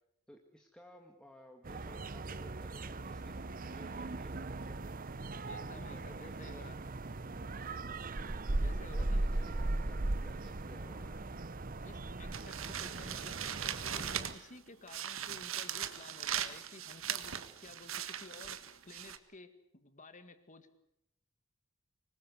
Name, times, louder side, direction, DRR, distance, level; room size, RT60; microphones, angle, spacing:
voice 1, 0.3-3.4 3.7-4.9 5.5-6.6 7.2-7.5 8.5-11.2, equal, 5° left, 2 dB, 1.9 m, -56 dB
sound 1, 1.6-14.4, right 2 dB, 40° right, 0.9 m, -38 dB
voice 2, 5.4-6.8 8.6-9.2 10.2-10.4 11.8-20.7, left 3 dB, 35° left, 10 dB, 2.1 m, -54 dB
sound 2, 12.3-14.5 14.9-19.2, right 10 dB, 70° right, 1.6 m, -39 dB
25.0 x 20.5 x 8.2 m, 0.76 s
head